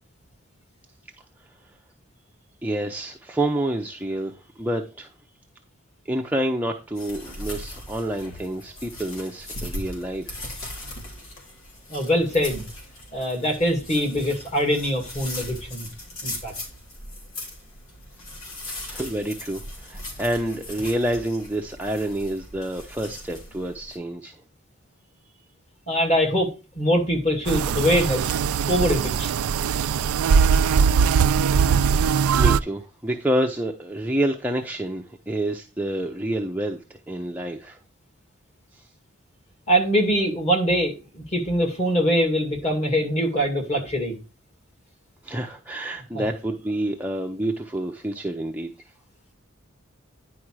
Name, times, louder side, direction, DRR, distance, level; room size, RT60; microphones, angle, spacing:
voice 1, 2.6-5.1 6.1-10.4 18.7-24.4 32.3-37.8 38.7-38.8 45.2-48.7, right 1 dB, 5° right, 0.7 m, -28 dB
sound 1, 7.0-24.0, left 1 dB, 80° left, 3.3 m, -39 dB
voice 2, 11.9-12.6 13.1-15.9 16.2-16.5 25.9-29.4 39.7-44.1 46.1-46.3, equal, 30° left, 2.4 m, -23 dB
sound 2, 27.5-32.6, right 6 dB, 90° right, 0.4 m, -20 dB
10.0 x 4.9 x 4.7 m
head